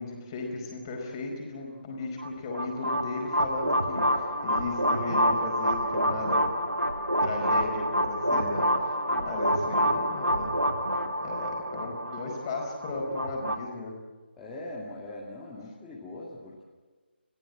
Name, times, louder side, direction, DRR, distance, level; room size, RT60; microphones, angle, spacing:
voice 1, 0.0-6.4 7.2-8.6 9.2-10.5 11.2-13.9, left 3 dB, 20° left, 1 dB, 4.8 m, -35 dB
sound 1, 2.2-13.6, equal, 85° right, 2.5 m, -27 dB
voice 2, 9.8-10.1 14.4-16.6, left 2 dB, 5° left, -8 dB, 2.6 m, -42 dB
30.0 x 15.0 x 7.6 m, 1.3 s
figure-of-eight pair, 150°, 6 cm